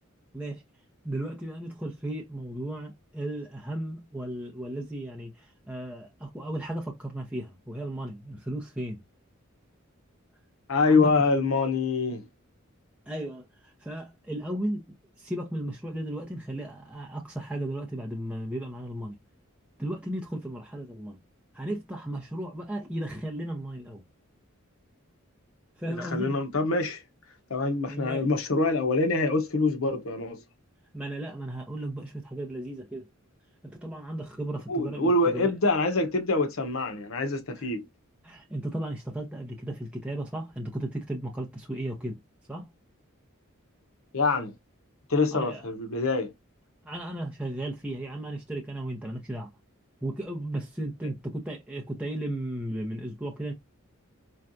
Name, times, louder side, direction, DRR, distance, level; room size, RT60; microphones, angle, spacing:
voice 1, 1.0-9.0 10.8-11.1 13.1-14.9 15.2-19.2 19.8-21.2 21.5-24.0 25.8-26.4 27.9-28.3 30.9-33.1 33.6-35.5 37.6-37.7 38.2-42.2 42.5-42.7 45.3-45.7 46.8-49.5 50.0-53.5, right 1 dB, 5° right, 0.7 m, -35 dB
voice 2, 10.7-12.2 26.1-27.0 27.5-30.4 34.7-37.9 44.1-44.5 45.1-46.3, left 3 dB, 75° left, 0.9 m, -25 dB
4.4 x 2.3 x 2.5 m
head